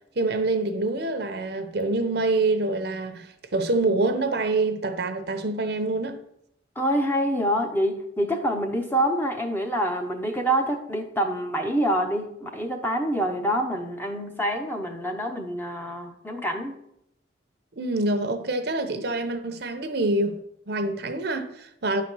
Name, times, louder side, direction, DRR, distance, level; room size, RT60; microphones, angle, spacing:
voice 1, 0.2-6.2 17.8-22.0, right 2 dB, 60° right, 0.8 m, -26 dB
voice 2, 6.8-16.8, right 1 dB, 10° left, 0.8 m, -26 dB
10.5 x 4.2 x 6.1 m
head